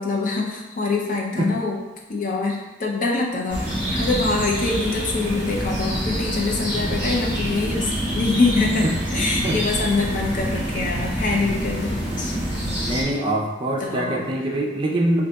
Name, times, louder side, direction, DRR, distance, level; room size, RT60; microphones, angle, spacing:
voice 1, 0.0-1.8 2.1-3.6 4.0-12.4 13.8-14.2, left 3 dB, 45° left, -1 dB, 0.5 m, -24 dB
sound 1, 3.5-13.0, equal, 10° right, 0.9 m, -26 dB
voice 2, 12.8-15.3, right 1 dB, 25° right, -1 dB, 0.3 m, -24 dB
3.9 x 2.6 x 2.2 m, 1.1 s
head